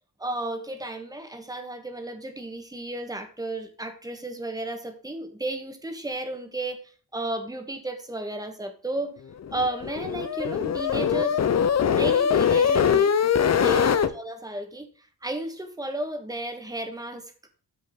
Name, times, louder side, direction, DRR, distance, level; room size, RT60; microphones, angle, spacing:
voice 1, 0.2-6.8 7.1-9.1 9.5-11.4 11.9-13.1 13.6-17.3, right 1 dB, 10° right, 6 dB, 1.5 m, -33 dB
sound 1, 9.4-14.1, left 7 dB, 45° left, 0.8 m, -22 dB
13.5 x 5.3 x 3.9 m, 0.40 s
wide cardioid pair, 160°, 37 cm